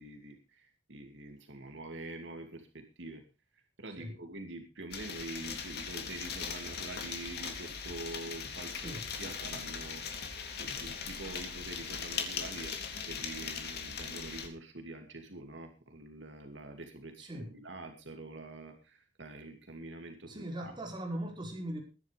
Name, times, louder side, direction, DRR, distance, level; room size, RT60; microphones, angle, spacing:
voice 1, 0.0-3.2 3.8-10.0 10.5-20.7, right 2 dB, 75° right, 5 dB, 2.6 m, -45 dB
sound 1, 4.9-14.5, left 6 dB, 60° left, 3.1 m, -39 dB
voice 2, 8.8-9.1 17.2-17.6 20.3-21.8, right 1 dB, 25° right, 1 dB, 5.0 m, -40 dB
21.0 x 10.5 x 3.4 m, 0.30 s
head